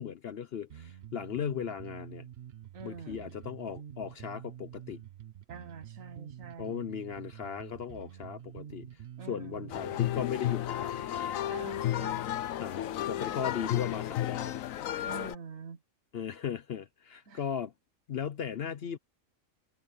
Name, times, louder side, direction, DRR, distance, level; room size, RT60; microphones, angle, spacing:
voice 1, 0.0-2.3 2.8-5.0 6.6-9.0 9.3-11.3 12.6-14.6 16.1-17.7 18.1-19.0, left 8 dB, 55° left, 0.7 m, -37 dB
Bass guitar, 0.7-10.3, right 10 dB, 55° right, 0.9 m, -47 dB
voice 2, 2.7-3.3 5.5-6.9 9.2-9.8 11.5-12.3 15.0-15.8 17.3-17.4, right 5 dB, 70° right, 1.6 m, -45 dB
sound 1, 9.7-15.4, left 12 dB, 75° left, 1.1 m, -33 dB
omnidirectional pair, 1.5 m